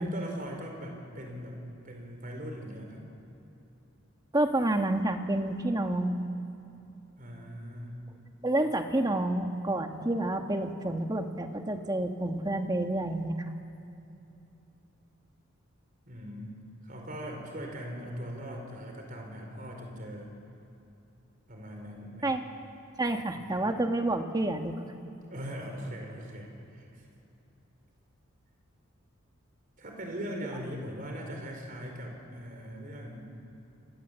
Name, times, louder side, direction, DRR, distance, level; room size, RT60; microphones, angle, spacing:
voice 1, 0.0-1.6 1.8-3.0 7.2-8.0 16.1-16.5 16.8-20.3 21.5-22.4 23.3-23.6 25.3-27.0 29.8-33.3, equal, 40° right, 2 dB, 4.5 m, -40 dB
voice 2, 4.3-6.2 8.4-13.4 22.2-22.4 23.0-24.9, right 1 dB, 20° right, 5 dB, 1.4 m, -29 dB
28.0 x 24.5 x 8.2 m, 2.9 s
head